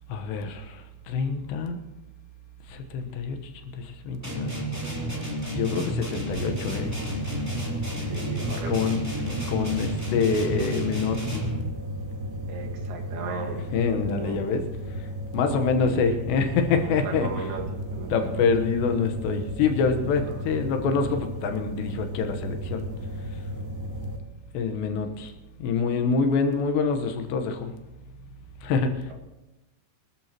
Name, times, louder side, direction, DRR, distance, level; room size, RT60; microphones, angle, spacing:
voice 1, 0.1-1.8 2.7-3.4 3.7-4.5 5.5-6.9 8.7-9.0 9.5-11.5 13.7-14.7 15.3-17.5 18.1-22.9 24.5-25.3 25.6-27.7 28.6-29.1, left 5 dB, 85° left, 6 dB, 3.4 m, -26 dB
sound 1, 4.2-11.7, right 1 dB, 5° right, 1.7 m, -31 dB
sound 2, 6.3-24.2, equal, 85° right, 3.4 m, -34 dB
voice 2, 8.0-9.4 12.5-14.5 15.9-16.0 16.7-18.6 20.3-20.4, right 4 dB, 70° right, 2 dB, 3.7 m, -37 dB
24.0 x 13.0 x 3.0 m, 1.0 s
omnidirectional pair, 4.8 m